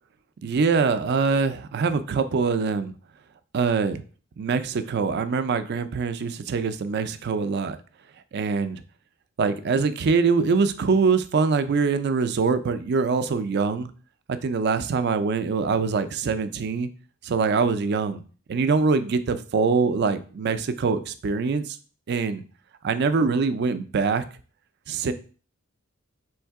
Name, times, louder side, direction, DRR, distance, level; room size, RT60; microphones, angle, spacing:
voice 1, 0.4-2.9 3.5-4.0 4.4-7.8 8.3-8.8 9.4-13.9 14.3-16.9 17.2-18.2 18.5-21.8 22.1-22.4 22.8-24.2 24.9-25.1, right 5 dB, 50° right, 11 dB, 0.4 m, -23 dB
3.5 x 3.1 x 4.6 m, 0.38 s
head